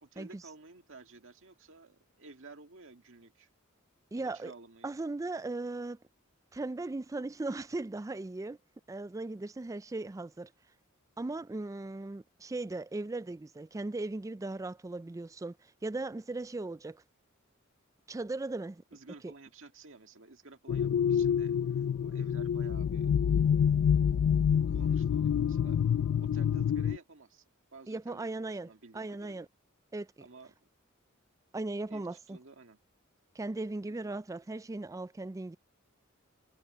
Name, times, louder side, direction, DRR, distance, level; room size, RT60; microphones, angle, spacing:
voice 1, 0.0-3.5 4.1-5.0 18.9-23.1 24.7-25.8 26.2-27.4 27.7-29.5 30.2-30.6 31.9-32.8 33.9-34.0, right 3 dB, 65° right, 2.1 m, -53 dB
voice 2, 4.1-4.5 4.8-6.0 6.5-8.6 8.9-10.5 11.2-17.0 18.1-18.8 19.2-19.3 27.9-29.5 29.9-30.1 31.5-32.4 33.4-35.6, right 2 dB, 15° right, 0.3 m, -38 dB
sound 1, 20.7-27.0, left 8 dB, 75° left, 0.3 m, -27 dB
head